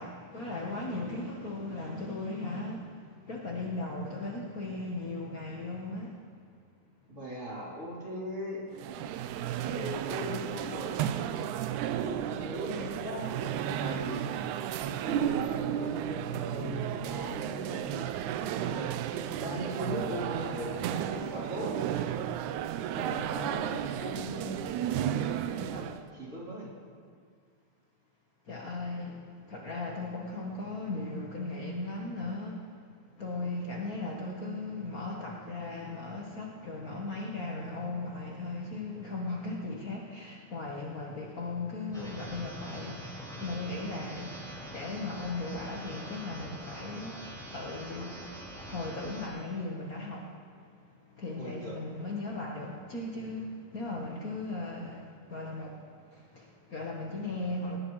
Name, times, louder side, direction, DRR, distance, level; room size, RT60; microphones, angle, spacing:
voice 1, 0.0-6.2 28.5-32.6 33.2-48.3 48.6-50.4 51.1-57.8, left 2 dB, 80° left, -2 dB, 0.8 m, -37 dB
voice 2, 7.1-8.6 9.7-11.0 12.0-14.4 15.0-18.1 18.6-19.0 19.4-21.8 22.9-25.2 25.5-26.7 51.4-51.8, equal, 20° right, -6 dB, 3.8 m, -39 dB
sound 1, 8.7-26.0, right 10 dB, 80° right, 1.9 m, -33 dB
sound 2, 41.9-49.3, equal, ahead, 4.5 m, -43 dB
19.5 x 19.0 x 3.2 m, 2.2 s
omnidirectional pair, 3.6 m